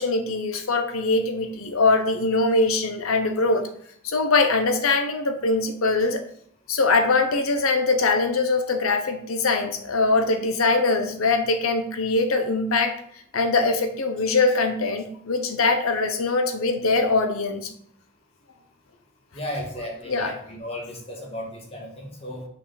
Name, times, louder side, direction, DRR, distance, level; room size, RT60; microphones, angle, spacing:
voice 1, 0.0-3.7 4.0-6.2 6.7-13.0 13.3-17.7 20.1-20.3, left 3 dB, 80° left, 7 dB, 0.8 m, -22 dB
voice 2, 19.3-22.5, left 1 dB, 30° left, -1 dB, 1.7 m, -34 dB
5.7 x 5.0 x 5.0 m, 0.65 s
head